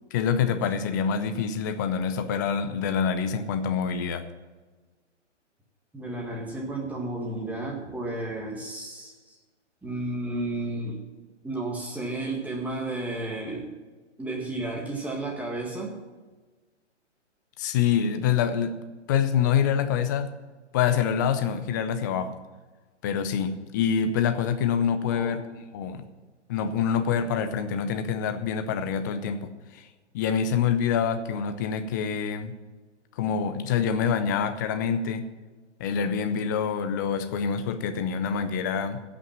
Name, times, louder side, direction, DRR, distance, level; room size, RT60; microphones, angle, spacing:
voice 1, 0.1-4.2 17.6-18.8 19.1-20.3 20.7-22.4 23.0-26.1 26.5-29.9 30.1-32.6 33.2-35.3 35.8-39.0, left 7 dB, 15° left, 10 dB, 0.5 m, -26 dB
voice 2, 5.9-9.3 9.8-11.0 11.4-13.7 14.2-15.9 25.1-25.4, right 2 dB, 5° right, -1 dB, 1.7 m, -32 dB
16.5 x 6.0 x 7.5 m, 1.3 s
hypercardioid pair, 135°, 36 cm